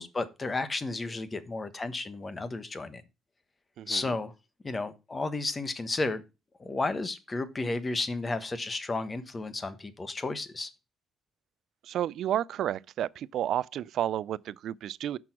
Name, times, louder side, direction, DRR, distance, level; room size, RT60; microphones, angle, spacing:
voice 1, 0.0-3.0 3.9-4.3 4.6-6.2 6.6-10.7, left 3 dB, 30° left, 1.2 m, -32 dB
voice 2, 3.8-4.1 11.8-15.2, right 11 dB, 75° right, 0.3 m, -31 dB
6.2 x 6.1 x 5.9 m
cardioid pair, 85°, 0 cm